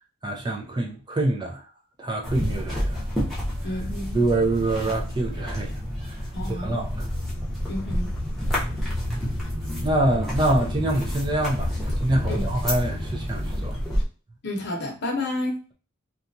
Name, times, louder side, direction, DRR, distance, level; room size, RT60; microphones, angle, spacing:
voice 1, 0.2-1.6 2.0-3.0 3.6-3.8 4.1-5.7 6.0-6.1 6.5-7.1 9.8-13.8, right 2 dB, 20° right, 0.4 m, -25 dB
sound 1, 2.2-14.0, equal, ahead, 0.8 m, -29 dB
voice 2, 3.6-4.2 6.3-6.8 7.7-8.1 12.3-12.4 14.4-15.6, left 2 dB, 55° left, 0.8 m, -30 dB
2.8 x 2.3 x 2.6 m
head